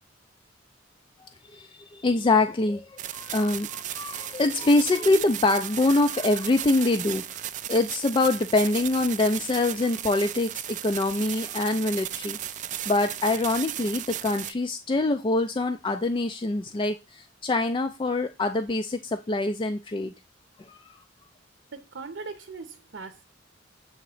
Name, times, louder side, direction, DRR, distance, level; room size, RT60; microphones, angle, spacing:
voice 1, 1.2-20.1 20.6-20.9, left 2 dB, 25° left, 0.4 m, -25 dB
sound 1, 3.0-14.5, right 12 dB, 40° right, 0.3 m, -35 dB
voice 2, 21.7-23.3, right 4 dB, 65° right, 0.7 m, -40 dB
7.7 x 3.0 x 4.8 m
head